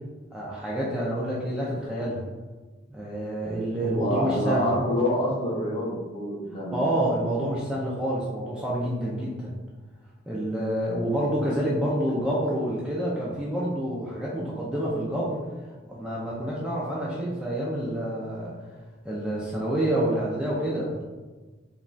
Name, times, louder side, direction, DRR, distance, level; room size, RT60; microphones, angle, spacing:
voice 1, 0.3-2.2 2.9-4.7 6.5-9.5 10.3-15.4 15.8-18.6 19.0-21.0, right 1 dB, 5° right, -6 dB, 0.3 m, -28 dB
voice 2, 3.8-6.8, left 1 dB, 30° left, -4 dB, 0.6 m, -27 dB
2.5 x 2.2 x 3.1 m, 1.3 s
head